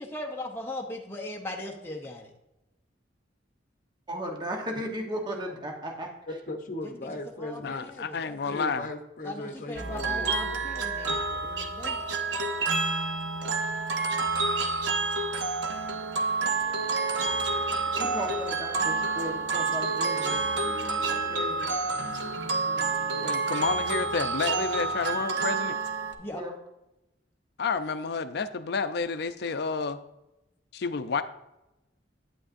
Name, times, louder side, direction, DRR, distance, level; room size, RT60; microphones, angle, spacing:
voice 1, 0.1-2.3 7.4-7.6 8.0-8.6 9.3-12.0 26.2-26.4, left 1 dB, 15° left, 0 dB, 0.7 m, -38 dB
voice 2, 4.1-6.1 18.0-20.4 21.1-21.7 26.3-26.5, equal, 25° right, 2 dB, 1.2 m, -35 dB
voice 3, 6.3-7.9 8.5-10.3 25.3-25.5, left 2 dB, 50° left, 5 dB, 0.8 m, -38 dB
voice 4, 7.6-8.9 23.2-25.8 27.6-30.0 30.7-31.2, left 4 dB, 65° left, 11 dB, 0.5 m, -30 dB
sound 1, 9.8-26.1, right 3 dB, 75° right, 0.8 m, -29 dB
sound 2, 16.4-25.4, left 1 dB, 30° left, 1.7 m, -50 dB
9.1 x 8.6 x 2.6 m, 0.92 s
head